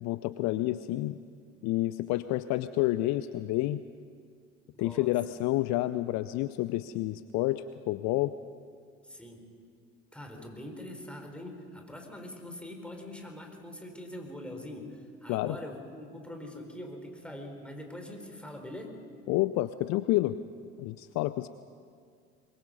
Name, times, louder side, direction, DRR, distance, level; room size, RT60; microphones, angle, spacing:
voice 1, 0.0-1.2 1.6-3.8 4.8-8.3 15.3-15.6 19.3-20.4 20.8-21.5, left 16 dB, 50° left, 14 dB, 0.6 m, -29 dB
voice 2, 4.7-5.1 9.0-9.4 10.1-18.9, left 1 dB, 5° left, 3 dB, 4.7 m, -43 dB
24.0 x 22.5 x 5.4 m, 2.2 s
figure-of-eight pair, 55°, 35 cm